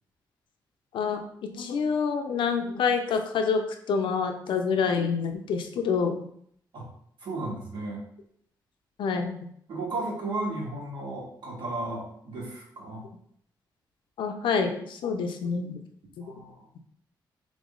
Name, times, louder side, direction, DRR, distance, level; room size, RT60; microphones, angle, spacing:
voice 1, 0.9-3.6 3.9-6.3 9.0-9.5 14.2-15.8 16.2-16.3, left 5 dB, 85° left, 5 dB, 0.6 m, -27 dB
voice 2, 7.2-8.0 9.7-13.0 16.2-16.7, right 2 dB, 70° right, -4 dB, 1.7 m, -34 dB
3.7 x 3.1 x 3.7 m, 0.67 s
cardioid pair, 105°, 8 cm